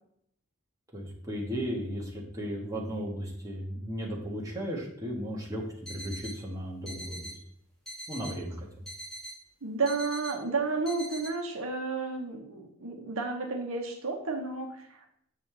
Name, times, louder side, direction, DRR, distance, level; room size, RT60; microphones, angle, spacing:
voice 1, 0.9-7.3 8.1-8.8, equal, 15° right, -3 dB, 1.4 m, -35 dB
sound 1, 5.9-6.4 6.9-7.4 7.9-8.4 8.9-9.4 9.9-10.4 10.9-11.3, right 1 dB, ahead, 2.7 m, -42 dB
voice 2, 9.6-15.1, right 4 dB, 70° right, 3 dB, 1.0 m, -32 dB
7.4 x 5.6 x 3.3 m, 0.69 s
head